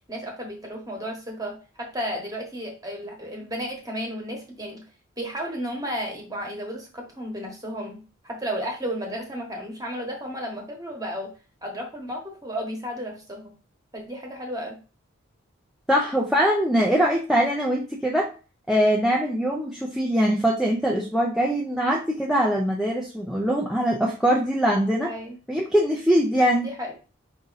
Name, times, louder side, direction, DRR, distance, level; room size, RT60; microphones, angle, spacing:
voice 1, 0.1-4.8 5.2-11.3 11.6-13.5 13.9-14.8 25.0-25.4 26.6-27.0, equal, 15° right, 1 dB, 1.1 m, -33 dB
voice 2, 15.9-18.3 18.7-25.1 25.5-26.7, equal, ahead, -2 dB, 0.4 m, -22 dB
5.0 x 2.6 x 4.0 m, 0.34 s
head